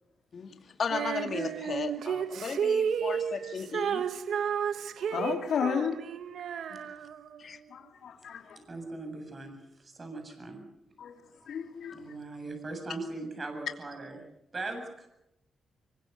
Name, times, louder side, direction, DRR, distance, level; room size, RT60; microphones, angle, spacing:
voice 1, 0.8-4.0 6.7-6.8 7.4-7.6, left 5 dB, 55° left, 2.1 m, -35 dB
Female singing, 0.9-7.4, right 7 dB, 80° right, 1.1 m, -32 dB
voice 2, 5.1-6.0 7.7-8.4 11.0-11.1 11.5-11.9, left 7 dB, 75° left, 3.0 m, -32 dB
voice 3, 8.6-10.6 11.9-14.2 14.5-15.1, right 2 dB, 35° right, 7.3 m, -40 dB
25.0 x 22.5 x 6.9 m
cardioid pair, 85°, 0 cm